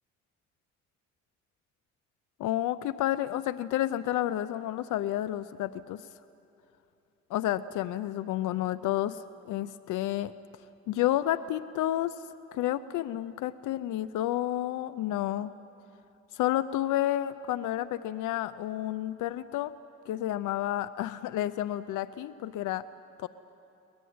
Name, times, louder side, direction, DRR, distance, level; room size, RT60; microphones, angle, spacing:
voice 1, 2.4-6.1 7.3-10.3 10.9-12.2 12.5-15.5 16.3-19.7 20.1-22.8 23.2-23.3, left 13 dB, 85° left, 15 dB, 0.6 m, -30 dB
24.0 x 19.5 x 9.5 m, 2.8 s
cardioid pair, 90°, 30 cm